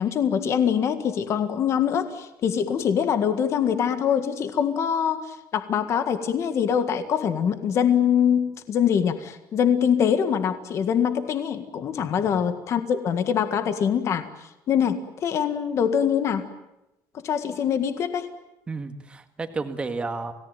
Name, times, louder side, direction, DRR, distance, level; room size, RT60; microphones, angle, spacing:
voice 1, 0.0-14.3 14.7-16.4 17.2-18.3, left 8 dB, 40° left, 9 dB, 1.7 m, -24 dB
voice 2, 12.0-12.4 18.7-20.3, right 3 dB, 15° right, 7 dB, 1.8 m, -32 dB
28.5 x 18.0 x 9.2 m, 0.94 s
cardioid pair, 175°, 8 cm